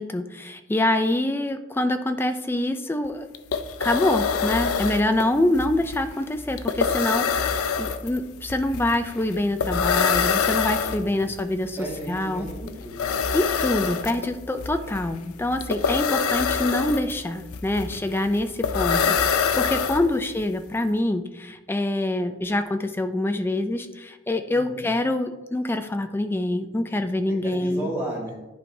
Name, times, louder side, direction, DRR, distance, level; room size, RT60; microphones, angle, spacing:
voice 1, 0.0-3.3 3.8-11.8 12.1-12.5 13.3-27.9, left 1 dB, 10° left, 8 dB, 0.3 m, -25 dB
sound 1, 3.0-3.1 3.3-20.4, left 6 dB, 85° left, 0.5 m, -26 dB
voice 2, 10.8-11.4 11.8-13.2 19.5-19.9 24.5-24.9 27.3-28.3, right 1 dB, 10° right, -5 dB, 1.8 m, -35 dB
10.5 x 4.5 x 2.7 m, 1.1 s
head